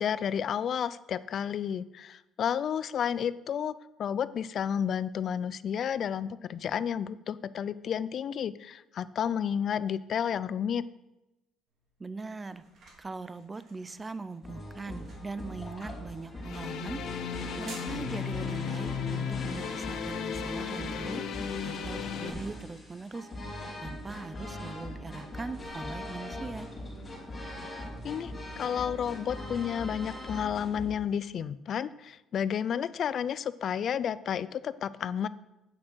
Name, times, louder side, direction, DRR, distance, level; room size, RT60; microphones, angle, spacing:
voice 1, 0.0-3.7 4.0-10.8 28.0-35.3, left 8 dB, 50° left, 17 dB, 0.3 m, -31 dB
sound 1, 11.7-29.2, right 3 dB, 55° right, 2.9 m, -59 dB
voice 2, 12.0-12.6 13.0-17.0 17.6-21.2 21.6-23.3 23.8-26.7, right 3 dB, 20° right, 14 dB, 0.4 m, -41 dB
sound 2, 14.4-30.9, left 1 dB, 15° left, 3.0 m, -41 dB
sound 3, 16.4-22.3, left 7 dB, 65° left, 0.9 m, -35 dB
8.7 x 6.1 x 6.2 m, 0.97 s
cardioid pair, 125°, 0 cm